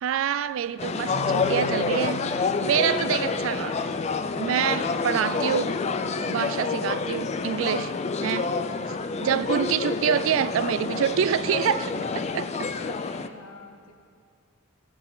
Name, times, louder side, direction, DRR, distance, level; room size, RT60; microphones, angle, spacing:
voice 1, 0.0-2.3 2.6-4.0 4.4-5.8 6.2-7.9 8.2-8.6 8.9-12.7, right 8 dB, 70° right, 0.3 m, -26 dB
sound 1, 0.8-13.3, left 4 dB, 30° left, 0.4 m, -28 dB
Keyboard (musical), 1.1-4.0, right 5 dB, 30° right, 1.2 m, -41 dB
voice 2, 12.7-13.9, left 4 dB, 85° left, 1.4 m, -45 dB
17.5 x 8.0 x 3.9 m
head